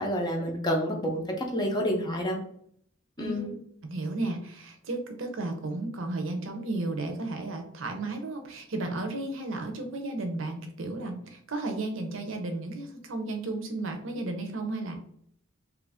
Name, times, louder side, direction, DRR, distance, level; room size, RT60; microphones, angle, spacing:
voice 1, 0.0-2.4 3.2-3.5, equal, 20° left, 1 dB, 0.5 m, -29 dB
voice 2, 3.2-3.5 3.9-15.0, right 2 dB, 70° right, 5 dB, 0.7 m, -33 dB
3.0 x 2.5 x 3.4 m, 0.66 s
head